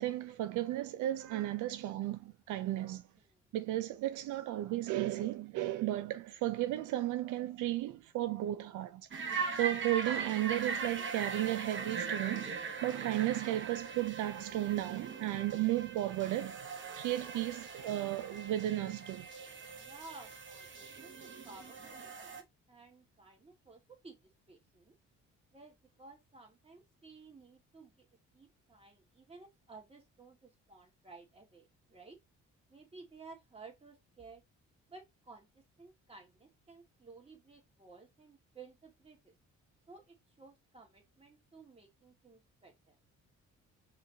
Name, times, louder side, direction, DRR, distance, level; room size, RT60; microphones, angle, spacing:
voice 1, 0.0-3.0 3.5-9.1 9.6-16.7 16.9-19.3, right 14 dB, 80° right, 0.5 m, -34 dB
sound 1, 9.1-22.4, right 5 dB, 40° right, 1.0 m, -41 dB
voice 2, 9.9-10.2 15.5-15.6 18.1-18.3 19.7-24.2 24.5-24.9 25.5-28.0 28.3-32.2 32.7-34.4 34.9-39.3 39.9-43.0, right 3 dB, 20° right, 1.7 m, -55 dB
4.8 x 3.1 x 2.7 m
cardioid pair, 90°, 30 cm